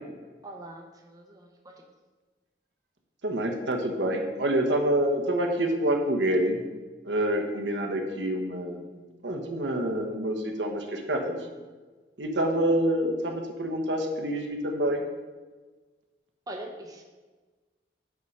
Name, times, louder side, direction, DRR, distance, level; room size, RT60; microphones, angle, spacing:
voice 1, 0.4-1.7 16.5-17.0, right 1 dB, 20° right, 1 dB, 0.8 m, -42 dB
voice 2, 3.2-6.6 7.0-8.9 9.2-11.4 12.2-15.0, right 1 dB, 80° right, 3 dB, 1.2 m, -27 dB
8.3 x 4.8 x 5.5 m, 1.3 s
head